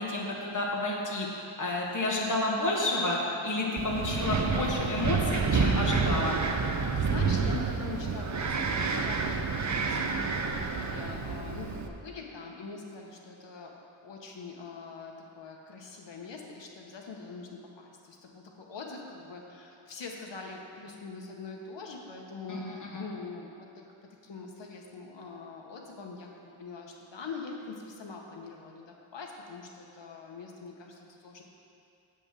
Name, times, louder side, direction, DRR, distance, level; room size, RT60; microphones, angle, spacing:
voice 1, 0.0-3.2 3.4-6.4 22.5-23.1, left 2 dB, 40° left, -3 dB, 1.6 m, -30 dB
Wind, 3.8-11.9, right 4 dB, 35° right, 0.6 m, -29 dB
voice 2, 6.9-13.7 14.0-23.9 24.2-31.4, left 4 dB, 60° left, 0 dB, 1.3 m, -43 dB
8.1 x 5.4 x 7.5 m, 2.6 s
wide cardioid pair, 115°, 49 cm